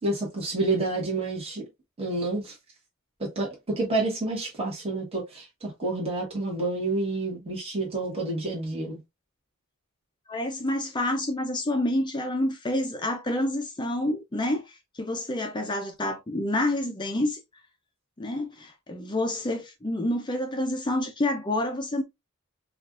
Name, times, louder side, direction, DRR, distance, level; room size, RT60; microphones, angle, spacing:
voice 1, 0.0-1.7 2.0-2.5 3.2-9.0, right 2 dB, 30° right, 1.5 m, -29 dB
voice 2, 10.3-17.4 18.2-22.0, left 1 dB, 20° left, 0.5 m, -28 dB
4.6 x 2.5 x 2.5 m
head